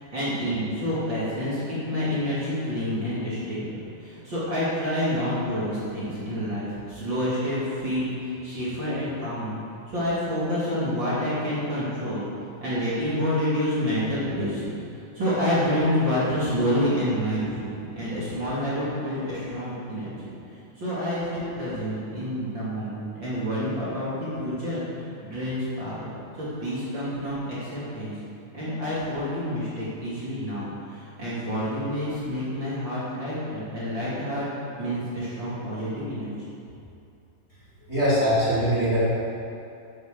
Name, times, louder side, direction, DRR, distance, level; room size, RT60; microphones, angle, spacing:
voice 1, 0.1-3.6 4.0-9.6 9.9-12.3 12.6-14.7 15.1-20.3 20.8-26.1 26.4-28.1 28.5-34.4 34.8-36.3, equal, 35° right, -10 dB, 3.2 m, -28 dB
voice 2, 37.9-39.0, equal, 20° left, -10 dB, 3.1 m, -22 dB
9.5 x 9.4 x 7.0 m, 2.7 s
omnidirectional pair, 3.7 m